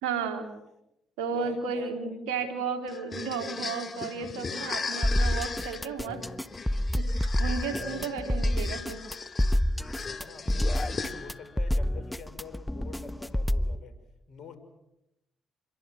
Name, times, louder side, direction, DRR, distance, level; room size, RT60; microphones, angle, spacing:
voice 1, 0.0-0.5 1.2-6.3 7.0-9.0, right 5 dB, 85° right, 5 dB, 3.7 m, -33 dB
voice 2, 1.4-1.9 8.0-8.2 10.0-14.0 14.3-14.6, left 5 dB, 60° left, 10 dB, 5.5 m, -47 dB
sound 1, 2.9-11.5, left 4 dB, 45° left, 2.4 m, -37 dB
sound 2, 5.0-13.8, left 1 dB, 10° left, 1.3 m, -28 dB
28.0 x 23.0 x 7.9 m, 0.88 s
hypercardioid pair, 55°, 0 cm